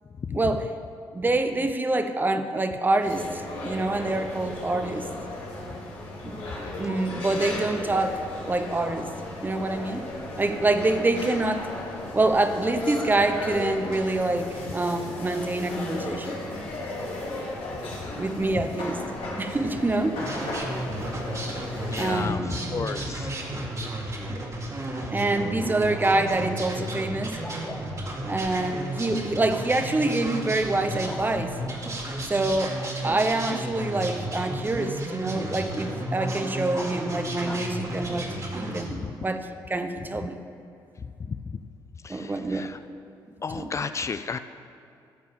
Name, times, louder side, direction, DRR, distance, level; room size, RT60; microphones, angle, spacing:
voice 1, 0.3-0.7 1.1-5.0 6.2-6.4 6.8-8.2 8.5-9.1 9.4-10.1 10.4-11.7 12.1-16.4 18.2-19.0 19.4-20.3 22.0-22.5 25.1-27.4 28.3-31.5 32.3-38.3 38.5-40.4 42.1-42.7 43.6-43.7, right 2 dB, 20° right, 8 dB, 0.8 m, -26 dB
sound 1, 3.0-22.3, left 2 dB, 85° left, 2.8 m, -35 dB
Bark, 19.0-38.4, left 1 dB, 15° left, 1.3 m, -48 dB
sound 2, 20.2-38.8, right 1 dB, 40° right, 2.0 m, -33 dB
voice 2, 21.9-23.3 39.0-39.1 41.3-41.4 42.0-42.8 43.4-44.4, left 5 dB, 35° left, 10 dB, 0.4 m, -32 dB
13.0 x 4.6 x 7.2 m, 2.4 s
cardioid pair, 70°, 8 cm